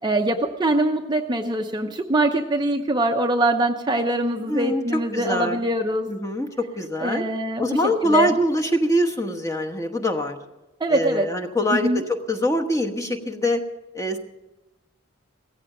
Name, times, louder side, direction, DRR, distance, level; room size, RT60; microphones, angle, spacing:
voice 1, 0.0-6.1 7.0-8.4 10.8-11.3 11.7-12.0, right 2 dB, 20° right, 4 dB, 0.7 m, -23 dB
voice 2, 4.5-4.8 5.1-5.6 6.1-7.3 7.6-10.4 10.9-13.6 13.9-14.2, left 1 dB, 15° left, 4 dB, 1.1 m, -24 dB
16.5 x 14.5 x 5.0 m, 1.0 s
head